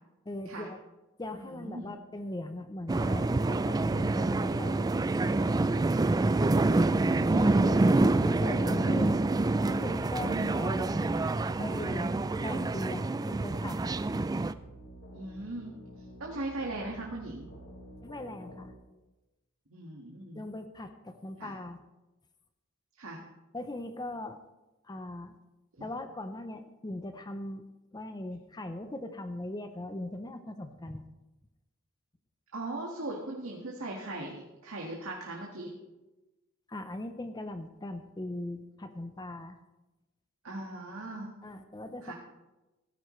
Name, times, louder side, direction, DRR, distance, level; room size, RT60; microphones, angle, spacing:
voice 1, 0.3-0.8 1.2-4.8 6.9-7.3 7.6-9.2 9.7-11.0 11.6-13.8 18.0-18.7 20.3-21.8 23.5-24.4 24.8-25.4 25.8-27.6 27.9-31.0 36.7-39.6 41.4-42.1, left 1 dB, 20° left, 8 dB, 0.7 m, -39 dB
voice 2, 1.4-1.9 6.8-7.9 10.2-10.7 15.1-15.8 16.2-17.5 19.7-20.4 21.4-21.5 23.0-23.2 25.8-25.9 32.5-35.7 40.4-41.3 42.0-42.1, right 2 dB, 90° right, -2 dB, 1.8 m, -39 dB
sound 1, 2.9-14.5, right 2 dB, 20° right, 0.3 m, -27 dB
sound 2, 3.9-18.7, right 1 dB, 65° left, 3.2 m, -49 dB
16.5 x 13.5 x 3.2 m, 1.0 s
head